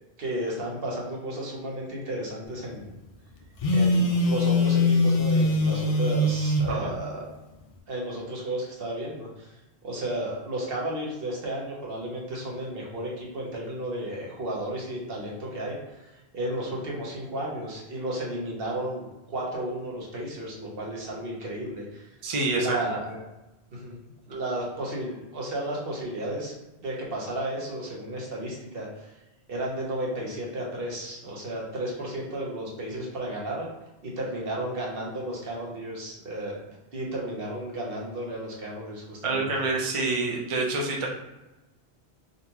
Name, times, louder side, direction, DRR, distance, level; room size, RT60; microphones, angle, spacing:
voice 1, 0.2-2.9 3.7-7.3 7.9-9.5 9.8-22.1 22.6-23.1 23.7-24.0 24.3-26.5 26.8-29.1 29.5-33.7 34.0-39.7, right 1 dB, 60° right, -3 dB, 1.1 m, -33 dB
Telephone, 3.6-6.7, left 2 dB, 60° left, 0.3 m, -22 dB
voice 2, 22.2-22.8 39.2-41.1, right 3 dB, 40° right, -2 dB, 0.5 m, -27 dB
3.7 x 2.5 x 2.8 m, 1.0 s
omnidirectional pair, 1.1 m